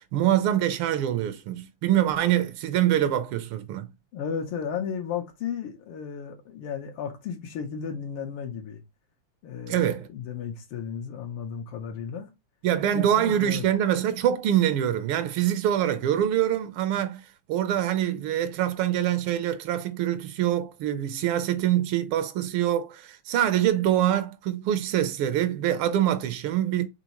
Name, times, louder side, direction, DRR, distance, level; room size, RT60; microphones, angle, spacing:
voice 1, 0.0-3.9 9.7-10.1 12.6-26.9, right 11 dB, 85° right, 1.5 m, -25 dB
voice 2, 4.1-8.8 9.4-12.3 12.9-13.6, left 7 dB, 85° left, 1.8 m, -34 dB
4.8 x 3.1 x 2.8 m
omnidirectional pair, 2.3 m